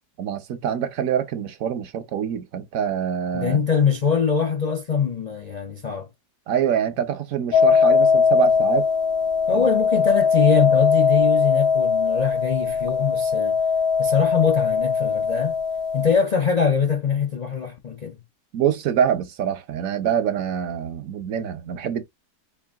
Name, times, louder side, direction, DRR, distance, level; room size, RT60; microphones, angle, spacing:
voice 1, 0.2-3.6 6.5-8.9 9.5-9.6 18.5-22.0, right 8 dB, 65° right, 1.0 m, -25 dB
voice 2, 3.3-6.1 9.5-13.6 14.0-15.6 15.9-18.2, left 6 dB, 90° left, 0.3 m, -23 dB
sound 1, 7.5-16.2, left 5 dB, 70° left, 1.1 m, -20 dB
4.7 x 2.5 x 3.4 m
omnidirectional pair, 1.7 m